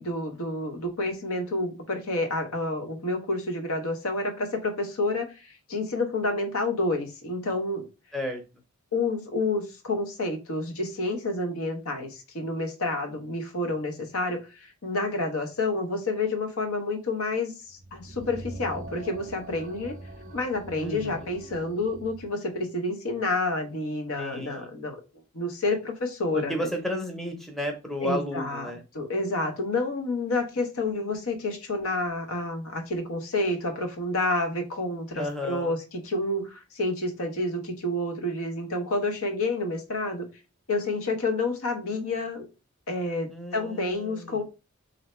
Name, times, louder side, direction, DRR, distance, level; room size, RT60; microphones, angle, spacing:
voice 1, 0.0-7.9 8.9-19.9 20.3-26.7 28.0-40.3 40.7-42.5 42.9-44.4, left 2 dB, 80° left, 5 dB, 0.9 m, -29 dB
sound 1, 17.7-22.4, right 1 dB, 35° right, 0.4 m, -43 dB
voice 2, 20.8-21.3 24.2-24.7 26.3-28.8 35.1-35.7 43.3-44.4, equal, ahead, 2 dB, 0.6 m, -33 dB
3.2 x 2.7 x 4.1 m, 0.29 s
head